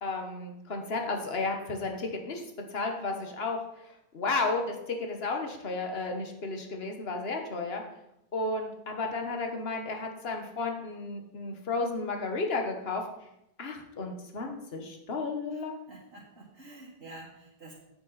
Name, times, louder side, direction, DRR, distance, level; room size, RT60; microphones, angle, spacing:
voice 1, 0.0-2.4 2.7-3.6 4.1-7.8 8.3-13.0 13.6-15.7, left 3 dB, 70° left, 3 dB, 1.5 m, -33 dB
voice 2, 15.5-17.7, right 2 dB, 75° right, -5 dB, 2.0 m, -49 dB
8.5 x 8.3 x 4.1 m, 0.83 s
omnidirectional pair, 1.1 m